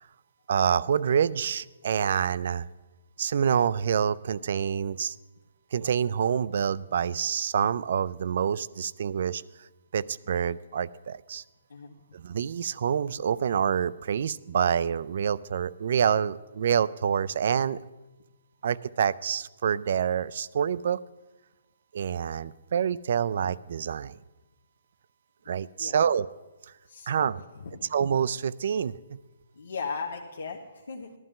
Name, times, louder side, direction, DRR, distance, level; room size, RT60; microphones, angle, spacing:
voice 1, 0.5-2.7 3.2-5.2 5.7-9.4 9.9-11.4 12.1-17.8 18.6-21.0 21.9-24.2 25.5-26.3 27.1-27.4 27.9-29.2, right 8 dB, 45° right, 19 dB, 0.3 m, -27 dB
voice 2, 26.9-27.3 27.6-27.9 29.5-31.1, left 5 dB, 75° left, -1 dB, 1.1 m, -37 dB
15.0 x 12.0 x 3.7 m, 1.1 s
hypercardioid pair, 170°, 0 cm